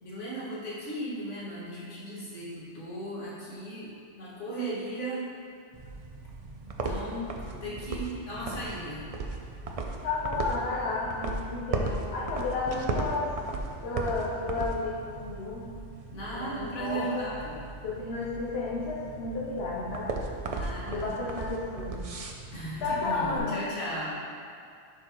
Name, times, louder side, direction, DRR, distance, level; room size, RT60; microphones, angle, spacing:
voice 1, 0.0-3.9 4.2-5.3 6.8-9.0 16.1-17.5 20.4-21.0 22.5-24.1, right 1 dB, 80° left, -8 dB, 2.2 m, -36 dB
sound 1, 5.7-23.4, right 3 dB, 50° right, 0.4 m, -37 dB
voice 2, 10.0-13.3 13.8-15.8 16.3-17.3 17.8-20.1 20.8-22.1 22.8-23.6, left 3 dB, 60° left, -5 dB, 1.0 m, -32 dB
10.5 x 4.8 x 3.0 m, 2.3 s
omnidirectional pair, 1.2 m